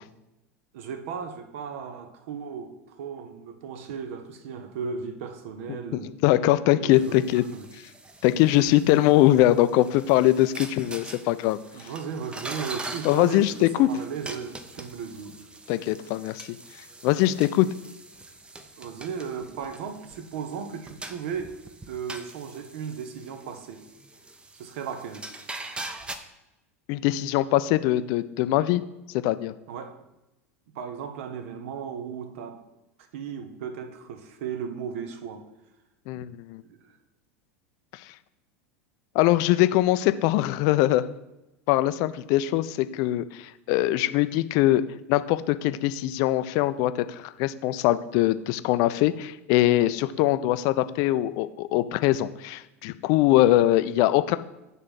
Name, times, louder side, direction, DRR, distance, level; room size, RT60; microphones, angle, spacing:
voice 1, 0.7-6.1 6.7-7.7 11.7-15.4 18.8-21.5 21.9-23.8 24.5-25.3 29.7-30.0 30.7-32.6 33.1-35.4 36.6-36.8, right 6 dB, 60° right, 7 dB, 0.8 m, -36 dB
voice 2, 5.9-7.4 8.2-11.9 13.0-13.9 15.7-16.6 17.0-17.7 26.9-28.8 29.1-29.5 36.1-36.6 37.9-38.1 39.1-41.1 41.7-44.8 45.1-54.4, left 15 dB, 50° left, 13 dB, 0.4 m, -22 dB
sound 1, 6.9-26.2, right 2 dB, 15° right, 0.6 m, -43 dB
6.8 x 3.6 x 5.7 m, 0.96 s
figure-of-eight pair, 80°, 8 cm